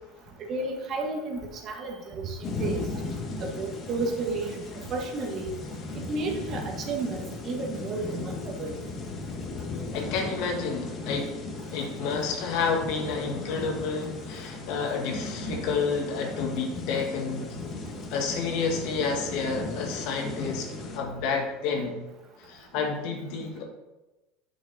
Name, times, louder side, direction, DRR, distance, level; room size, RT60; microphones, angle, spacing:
voice 1, 0.5-2.9 3.4-5.5 6.1-8.7, right 3 dB, 45° right, 2 dB, 1.6 m, -32 dB
sound 1, 2.4-21.0, left 3 dB, 40° left, 1.6 m, -37 dB
voice 2, 9.9-11.3 11.7-17.6 18.1-22.0 22.4-23.6, left 5 dB, 65° left, 2 dB, 1.6 m, -30 dB
8.0 x 6.3 x 4.2 m, 1.1 s
supercardioid pair, 100°, 0 cm